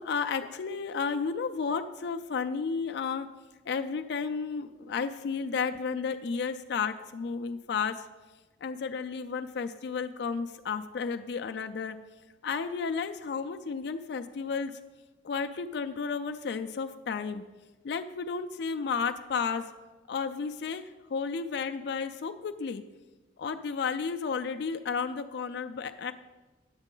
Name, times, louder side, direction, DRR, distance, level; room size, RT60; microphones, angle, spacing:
voice 1, 0.0-3.3 3.6-14.8 15.2-19.7 20.1-22.8 23.4-26.1, left 5 dB, 65° left, 7 dB, 0.4 m, -33 dB
9.6 x 8.1 x 3.8 m, 1.2 s
head